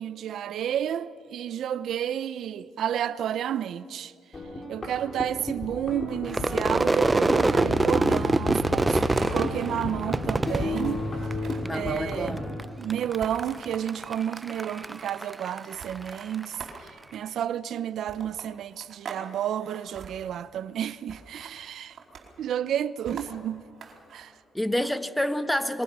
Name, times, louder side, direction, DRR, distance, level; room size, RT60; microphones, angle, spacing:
voice 1, 0.0-4.1 4.7-9.0 9.3-11.0 11.7-12.4 12.8-22.0 22.4-23.6 24.1-24.4, right 10 dB, 70° right, 0.6 m, -31 dB
sound 1, 4.3-12.6, left 2 dB, 35° left, 5.4 m, -33 dB
Crowd / Fireworks, 6.3-11.7 12.0-12.6 12.9-16.4, right 2 dB, 20° right, 0.6 m, -26 dB
sound 2, 8.9-9.9 10.3-10.4 10.7-11.8 13.2-13.8 14.4-15.0 15.7-17.1 18.1-19.2 19.5-20.1 21.1-21.5 21.9-22.4 23.0-24.2, right 5 dB, 55° right, 4.4 m, -43 dB
voice 2, 11.6-12.6 16.4-16.5 24.5-25.8, left 1 dB, 5° left, 1.3 m, -28 dB
26.0 x 22.5 x 6.1 m
cardioid pair, 90°, 0 cm